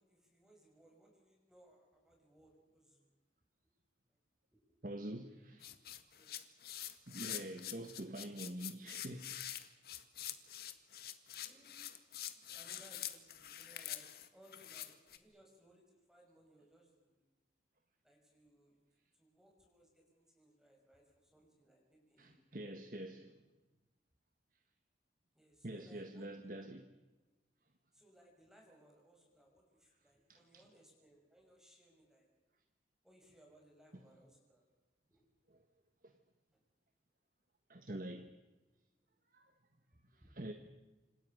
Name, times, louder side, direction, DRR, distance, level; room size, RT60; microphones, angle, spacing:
voice 1, 0.0-3.1 4.1-4.2 4.5-4.6 6.2-6.3 9.9-10.3 10.7-10.8 11.4-17.3 18.0-18.8 19.1-22.7 25.3-26.7 27.9-32.3 33.0-34.6 35.1-35.2 35.6-35.7 36.5-36.6 39.1-39.2 40.2-40.4, right 1 dB, 5° right, 5.9 m, -66 dB
voice 2, 4.8-5.7 7.1-9.3 22.2-23.4 25.6-26.8 30.3-30.6 35.5-35.6 36.0-36.1 37.7-38.3 39.3-39.5 40.1-40.5, right 1 dB, 50° right, 1.6 m, -46 dB
sound 1, 5.6-15.2, left 12 dB, 55° left, 2.0 m, -46 dB
28.5 x 26.5 x 6.6 m
head